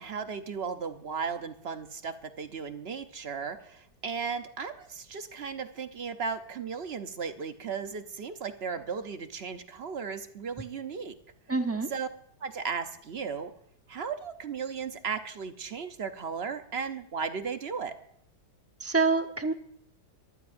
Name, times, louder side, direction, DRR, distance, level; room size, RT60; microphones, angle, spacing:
voice 1, 0.0-11.1 11.9-12.1 12.4-13.5 13.9-18.0, right 6 dB, 50° right, 8 dB, 0.8 m, -35 dB
voice 2, 11.5-11.9 18.8-19.5, right 4 dB, 20° right, 6 dB, 0.4 m, -26 dB
23.0 x 14.5 x 2.6 m, 0.70 s
omnidirectional pair, 1.8 m